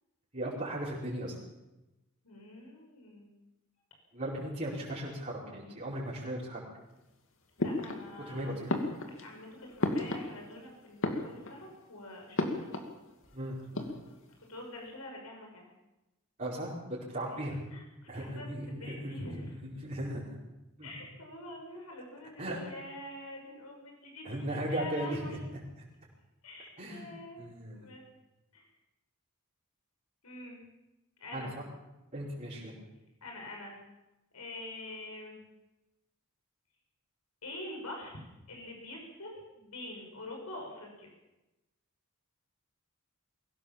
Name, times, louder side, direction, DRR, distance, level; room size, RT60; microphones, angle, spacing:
voice 1, 0.3-1.3 4.1-6.6 8.3-8.7 13.3-13.9 16.4-17.6 18.1-19.1 19.5-20.4 20.8-20.9 22.4-22.6 24.2-25.2 26.8-27.1 27.4-27.9 31.3-31.6 32.1-32.7, right 1 dB, 35° right, -8 dB, 5.0 m, -37 dB
voice 2, 2.2-3.3 7.6-8.6 9.1-12.7 14.5-15.7 17.3-17.4 17.7-17.8 18.1-19.6 20.8-25.4 26.4-27.4 27.7-28.0 28.5-28.7 30.2-30.6 31.2-31.5 33.2-33.8 34.3-35.4 37.4-41.1, left 1 dB, 90° left, 1 dB, 6.2 m, -45 dB
sound 1, 7.6-8.3 8.7-10.6 10.9-11.8 12.4-13.0 13.2-13.3 13.6-14.3, left 2 dB, 60° left, 2.6 m, -34 dB
23.0 x 16.5 x 7.4 m, 0.99 s
head